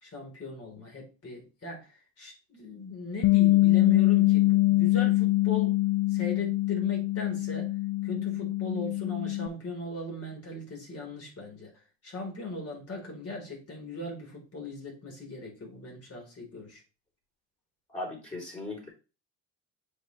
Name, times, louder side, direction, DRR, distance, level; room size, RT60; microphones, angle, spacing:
voice 1, 0.0-5.8 6.1-7.7 8.0-11.7 12.0-16.8, left 2 dB, 40° left, 3.9 m, -39 dB
Bass guitar, 3.2-9.5, left 19 dB, 60° left, 0.6 m, -24 dB
voice 2, 17.9-18.9, left 2 dB, 20° left, 3.5 m, -37 dB
7.7 x 5.1 x 3.2 m
cardioid pair, 100°, 37 cm